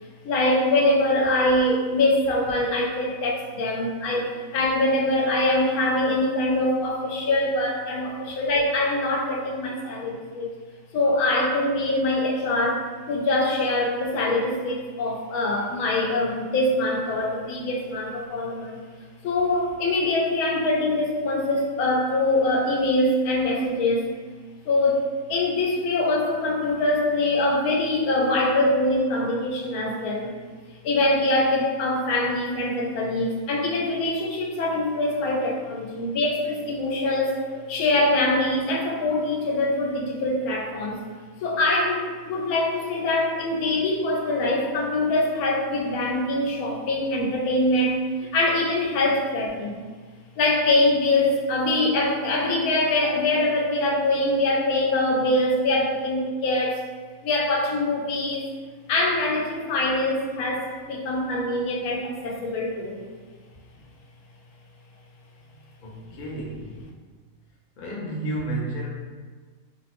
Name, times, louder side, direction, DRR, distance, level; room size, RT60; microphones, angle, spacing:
voice 1, 0.0-10.5 10.9-18.8 19.2-24.0 24.7-30.3 30.8-41.1 41.4-49.8 50.4-56.9 57.2-58.5 58.9-63.0, left 2 dB, 90° left, -1 dB, 1.1 m, -23 dB
voice 2, 65.8-66.9 67.8-68.9, right 2 dB, 70° left, -4 dB, 0.4 m, -32 dB
2.8 x 2.0 x 2.9 m, 1.5 s
omnidirectional pair, 1.5 m